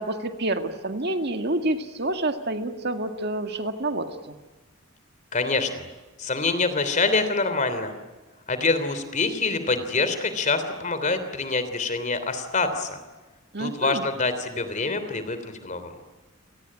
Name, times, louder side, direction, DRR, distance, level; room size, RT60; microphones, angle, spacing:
voice 1, 0.0-4.4 13.5-14.0, right 2 dB, 55° right, 7 dB, 2.0 m, -28 dB
voice 2, 5.3-5.8 6.2-7.9 8.5-13.0 13.6-15.9, left 3 dB, 40° left, 10 dB, 3.3 m, -25 dB
28.5 x 19.0 x 9.8 m, 1.2 s
head